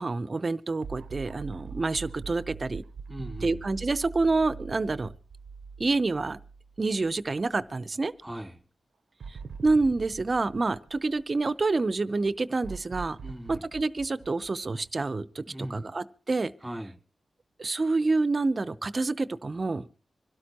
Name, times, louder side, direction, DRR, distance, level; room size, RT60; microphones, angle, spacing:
voice 1, 0.0-2.8 3.4-5.1 5.8-6.4 6.8-8.1 9.6-13.2 13.5-16.5 17.6-19.9, right 3 dB, 45° right, 0.8 m, -27 dB
sound 1, 0.8-7.1 7.5-7.6 9.2-11.7 12.6-15.4, right 5 dB, 85° right, 0.7 m, -43 dB
voice 2, 3.1-3.6 8.2-8.6 13.2-13.6 15.5-15.9 16.6-17.0, right 1 dB, 5° right, 2.3 m, -38 dB
25.5 x 12.5 x 3.0 m
cardioid pair, 60°, 0 cm